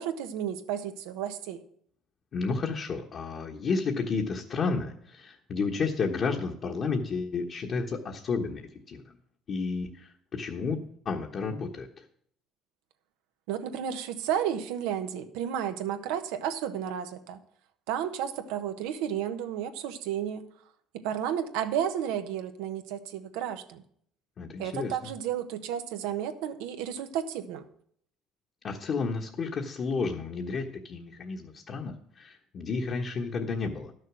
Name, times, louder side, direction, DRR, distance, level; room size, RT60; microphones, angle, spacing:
voice 1, 0.0-1.6 13.5-17.4 17.9-20.5 20.9-23.8 24.6-27.6, right 9 dB, 90° right, 8 dB, 1.1 m, -32 dB
voice 2, 2.3-9.0 9.5-12.0 24.4-25.0 28.6-33.9, left 4 dB, 45° left, 0 dB, 1.2 m, -32 dB
12.0 x 6.5 x 6.1 m, 0.63 s
cardioid pair, 110°, 0 cm